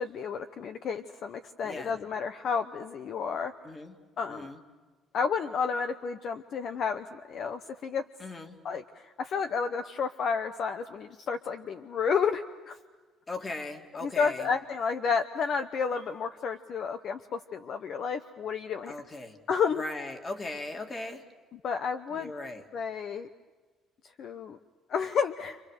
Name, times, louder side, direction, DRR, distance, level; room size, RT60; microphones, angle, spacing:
voice 1, 0.0-3.5 4.2-4.5 5.1-8.0 8.6-12.8 14.0-19.0 19.5-19.8 21.6-22.3 22.7-23.3 24.2-24.6 24.9-25.6, left 6 dB, 50° left, 8 dB, 0.9 m, -31 dB
voice 2, 1.6-1.9 3.6-4.0 4.3-4.6 8.2-8.6 13.3-14.5 18.9-19.4 19.7-21.3 22.1-22.6, left 2 dB, 20° left, 5 dB, 2.4 m, -38 dB
29.0 x 27.0 x 6.6 m, 1.3 s
cardioid pair, 135°, 0 cm